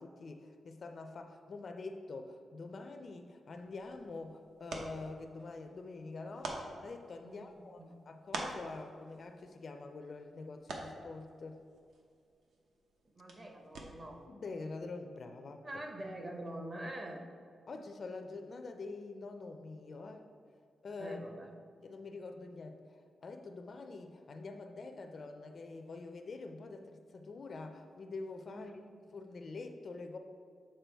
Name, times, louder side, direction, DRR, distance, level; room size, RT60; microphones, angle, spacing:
voice 1, 0.0-11.6 14.3-15.8 17.7-20.3 20.8-21.2 21.8-28.7 29.1-30.2, left 3 dB, 40° left, 6 dB, 0.4 m, -46 dB
sound 1, 3.5-14.3, right 2 dB, 80° right, 0.8 m, -48 dB
voice 2, 7.2-7.9 13.1-14.2 15.6-17.2 21.0-21.5 28.5-28.7, right 1 dB, 25° right, 3 dB, 0.6 m, -45 dB
7.4 x 4.5 x 3.4 m, 2.3 s
wide cardioid pair, 165°, 0 cm